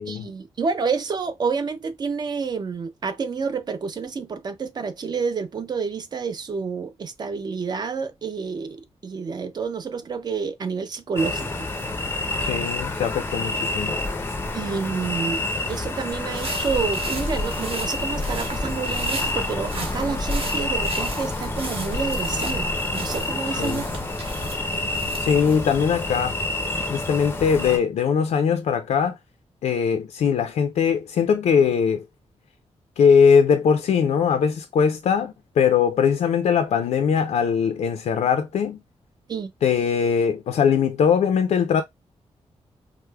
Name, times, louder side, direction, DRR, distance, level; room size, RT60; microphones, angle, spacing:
voice 1, 0.1-11.7 14.5-23.8 39.3-39.5, right 5 dB, 40° right, 0.4 m, -29 dB
sound 1, 11.2-27.8, left 2 dB, 20° left, 0.4 m, -28 dB
voice 2, 12.4-14.0 23.6-23.8 25.2-26.4 26.9-29.1 29.6-32.0 33.0-38.8 39.6-41.8, left 7 dB, 80° left, 0.4 m, -21 dB
sound 2, 16.1-25.6, right 2 dB, 55° right, 1.0 m, -35 dB
4.6 x 2.0 x 2.2 m
wide cardioid pair, 175°, 11 cm